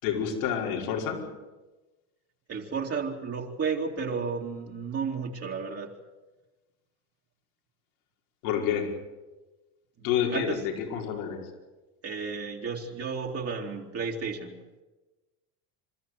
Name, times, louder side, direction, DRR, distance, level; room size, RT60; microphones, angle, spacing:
voice 1, 0.0-1.2 8.4-8.9 10.0-11.4, left 8 dB, 80° left, 1 dB, 5.5 m, -28 dB
voice 2, 2.5-5.9 10.0-10.6 12.0-14.6, right 5 dB, 30° right, -1 dB, 2.8 m, -33 dB
28.5 x 13.5 x 9.4 m, 1.2 s
supercardioid pair, 110°, 44 cm